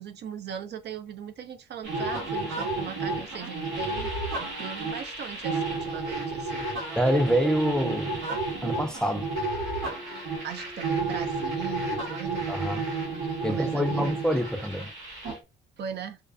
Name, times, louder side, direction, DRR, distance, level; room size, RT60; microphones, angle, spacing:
voice 1, 0.0-4.1 4.4-7.0 10.4-12.5 13.5-14.2 15.8-16.2, right 8 dB, 60° right, 0.4 m, -39 dB
sound 1, 1.8-15.4, right 3 dB, 90° right, 1.1 m, -31 dB
voice 2, 7.0-8.2 8.6-9.3 12.5-12.8 13.4-14.9, equal, 5° left, 0.4 m, -26 dB
Wind instrument woodwind instrument, 9.5-14.6, left 1 dB, 15° right, 0.9 m, -48 dB
2.4 x 2.3 x 2.3 m
cardioid pair, 90°, 20 cm